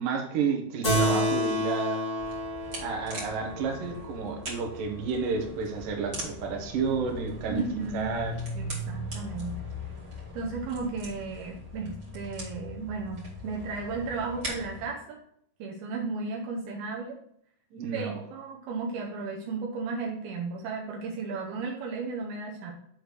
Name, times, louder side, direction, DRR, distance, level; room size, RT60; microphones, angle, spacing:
voice 1, 0.0-2.0 2.8-7.6 7.9-8.3 17.7-18.2, right 5 dB, 75° right, 2 dB, 2.0 m, -31 dB
Keyboard (musical), 0.8-5.7, equal, 20° left, 1.7 m, -30 dB
sound 1, 2.2-14.8, left 1 dB, 40° right, 1.5 m, -40 dB
voice 2, 7.5-8.1 8.5-9.6 10.3-15.2 15.6-17.2 17.9-22.7, right 4 dB, 90° right, -1 dB, 2.2 m, -34 dB
7.7 x 3.3 x 6.4 m, 0.69 s
omnidirectional pair, 5.7 m